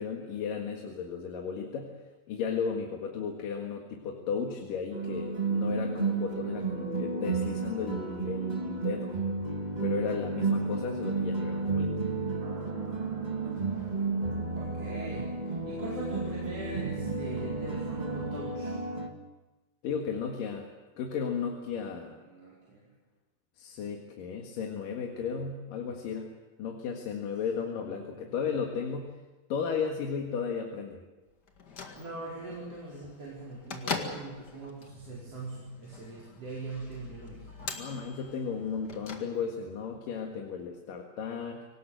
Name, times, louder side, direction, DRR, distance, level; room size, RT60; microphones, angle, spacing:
voice 1, 0.0-2.0 2.3-9.1 9.8-12.0 19.8-20.7 21.0-22.2 23.6-26.3 26.6-29.1 29.5-31.0 37.8-41.7, left 6 dB, 70° left, 2 dB, 3.3 m, -34 dB
sound 1, 4.9-19.1, right 4 dB, 65° right, 0.4 m, -32 dB
sound 2, 12.4-18.4, right 5 dB, 15° right, 1.3 m, -43 dB
voice 2, 14.6-18.8 22.2-22.9 28.0-28.2 32.0-37.7, right 2 dB, 40° right, -6 dB, 5.6 m, -42 dB
Bell / Microwave oven, 31.5-39.8, left 4 dB, 35° left, 1.9 m, -42 dB
24.5 x 19.0 x 7.9 m, 1.2 s
omnidirectional pair, 4.2 m